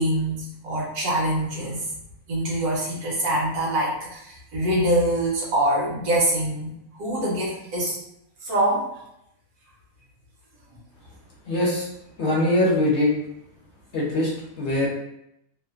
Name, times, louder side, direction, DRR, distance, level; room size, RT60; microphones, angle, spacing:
voice 1, 0.0-1.9 2.3-8.0 8.4-8.9, right 1 dB, 85° right, -4 dB, 1.4 m, -24 dB
voice 2, 11.4-11.9 12.2-13.1 13.9-14.3 14.6-14.9, left 1 dB, 55° left, -4 dB, 0.9 m, -21 dB
3.1 x 2.1 x 2.4 m, 0.81 s
omnidirectional pair, 1.6 m